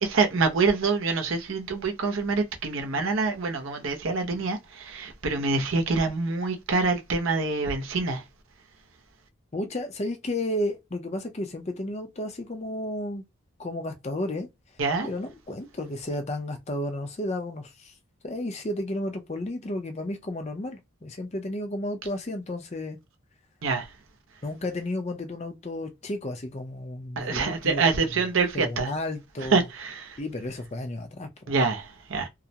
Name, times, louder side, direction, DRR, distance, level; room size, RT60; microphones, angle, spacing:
voice 1, 0.0-8.2 14.8-15.1 23.6-23.9 27.2-28.9 29.5-30.2 31.5-32.3, right 4 dB, 75° right, 0.7 m, -26 dB
voice 2, 9.5-13.2 13.6-14.5 15.0-17.9 18.2-23.0 24.4-27.9 28.5-29.6 30.2-31.5, left 1 dB, 30° left, 0.5 m, -32 dB
2.3 x 2.1 x 2.7 m
head